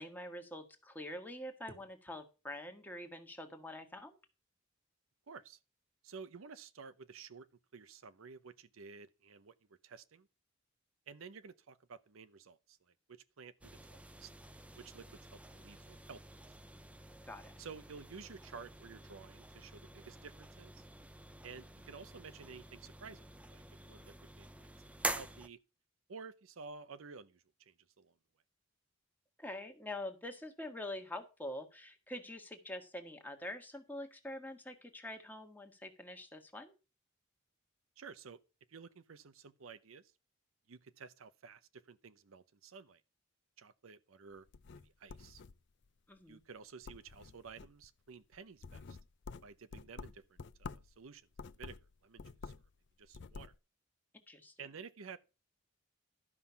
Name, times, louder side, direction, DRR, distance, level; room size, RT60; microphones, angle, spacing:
voice 1, 0.0-4.2 17.3-17.5 29.4-36.8 46.1-46.4 54.3-54.5, left 1 dB, 10° left, 1.4 m, -45 dB
voice 2, 5.3-5.6 6.0-7.5 7.7-10.3 11.1-14.3 14.7-16.2 17.6-20.9 21.4-23.2 23.5-24.7 25.1-25.6 26.1-28.1 38.0-38.4 38.7-40.1 40.7-43.0 43.6-44.5 44.8-45.4 46.3-49.0 49.4-51.3 51.6-52.5 53.0-53.5 54.6-55.2, right 5 dB, 85° right, 0.7 m, -52 dB
sound 1, 13.6-25.5, right 2 dB, 5° right, 0.5 m, -47 dB
sound 2, 44.4-45.9 46.3-46.6 46.8-47.9 48.3-51.0 51.3-52.7 53.0-53.6, left 4 dB, 60° left, 0.5 m, -49 dB
12.5 x 5.6 x 5.7 m
head